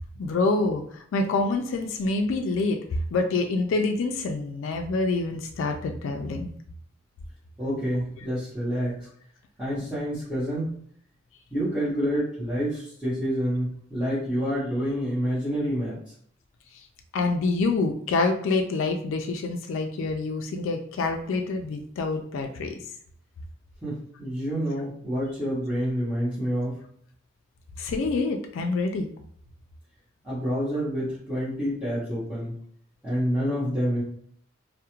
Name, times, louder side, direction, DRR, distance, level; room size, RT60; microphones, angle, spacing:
voice 1, 0.2-2.8 3.1-6.5 17.1-22.8 27.8-29.1, left 3 dB, 70° left, 4 dB, 0.3 m, -26 dB
voice 2, 7.6-9.1 9.6-10.7 11.5-16.0 23.8-26.8 30.2-32.5 33.0-34.0, equal, 5° right, -12 dB, 0.7 m, -28 dB
2.3 x 2.0 x 2.9 m, 0.62 s
head